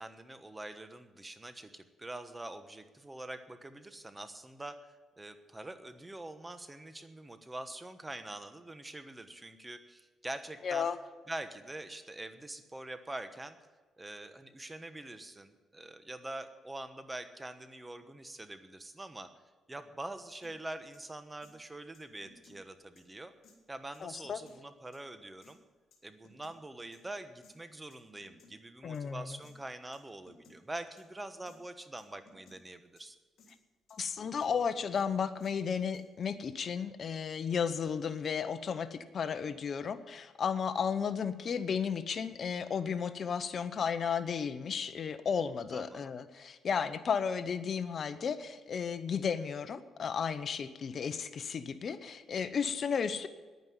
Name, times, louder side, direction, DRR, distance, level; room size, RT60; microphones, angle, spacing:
voice 1, 0.0-10.9 11.3-13.6 14.0-19.3 19.7-23.3 23.7-25.6 26.0-33.2 45.7-46.1, right 2 dB, 15° right, 10 dB, 1.1 m, -44 dB
voice 2, 10.6-11.0 24.0-24.4 28.8-29.4 33.9-53.3, left 6 dB, 50° left, 13 dB, 0.8 m, -34 dB
sound 1, 20.4-20.5 20.9-21.0 21.4-21.5 21.9-22.6 23.0-23.1 23.4-23.6 23.9-24.5 24.9-25.0 25.4-25.5 25.9-26.6 26.9-27.0 27.4-27.5 27.9-28.5 28.9-29.0 29.4-29.5 29.9-30.0 30.3-30.6 31.0-31.1 31.5-31.6 32.0-32.6 33.0-33.1 33.4-33.6 33.9-34.5 34.9-35.0 35.4-35.5 35.9-36.4, left 3 dB, 65° left, 3.2 m, -61 dB
10.5 x 9.4 x 9.5 m, 1.3 s
cardioid pair, 90°, 0 cm